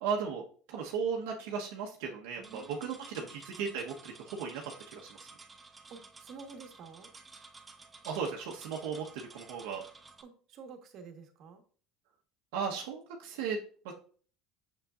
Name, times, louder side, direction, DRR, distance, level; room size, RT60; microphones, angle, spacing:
voice 1, 0.0-5.3 8.0-9.8 12.5-13.6, right 6 dB, 75° right, 0 dB, 1.1 m, -36 dB
sound 1, 2.4-10.2, right 4 dB, 20° right, 0.9 m, -53 dB
voice 2, 2.4-3.3 5.9-7.1 10.2-11.6, right 5 dB, 55° right, 4 dB, 1.4 m, -50 dB
6.8 x 6.7 x 2.5 m, 0.43 s
supercardioid pair, 100°, 0 cm